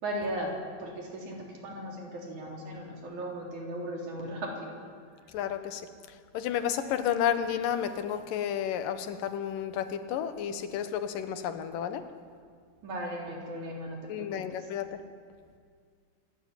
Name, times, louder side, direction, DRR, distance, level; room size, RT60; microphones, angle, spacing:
voice 1, 0.0-0.5 0.8-4.7 12.8-14.4, right 1 dB, 60° right, 0 dB, 4.9 m, -37 dB
voice 2, 5.3-5.9 6.3-12.1 14.1-15.0, left 9 dB, 80° left, 10 dB, 2.7 m, -31 dB
25.5 x 13.0 x 9.9 m, 2.1 s
omnidirectional pair, 3.9 m